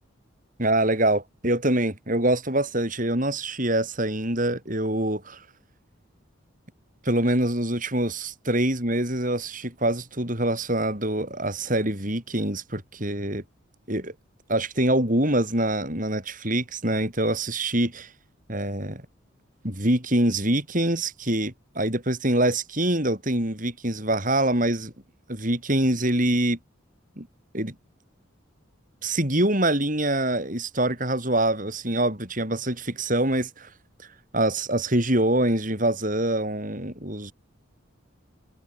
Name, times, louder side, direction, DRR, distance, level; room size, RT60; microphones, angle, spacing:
voice 1, 0.6-5.4 7.1-13.4 13.9-14.1 14.5-18.1 18.5-19.0 19.6-24.9 25.3-26.6 27.2-27.3 27.5-27.7 29.0-33.7 34.3-37.3, right 1 dB, 40° right, 6.9 m, -25 dB
head